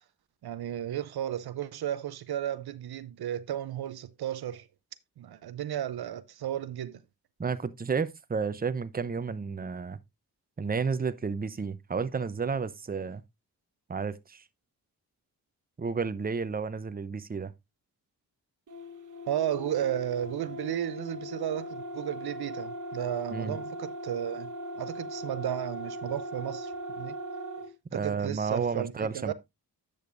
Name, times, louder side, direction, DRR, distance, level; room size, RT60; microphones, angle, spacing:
voice 1, 0.4-4.7 5.2-7.0 19.3-27.2 27.9-29.3, right 11 dB, 75° right, 0.6 m, -34 dB
voice 2, 7.4-10.0 10.6-13.2 13.9-14.4 15.8-17.5 23.3-23.6 27.9-29.3, right 5 dB, 25° right, 0.7 m, -31 dB
sound 1, 18.7-27.7, equal, 50° right, 1.4 m, -39 dB
10.5 x 6.6 x 2.5 m
cardioid pair, 55°, 39 cm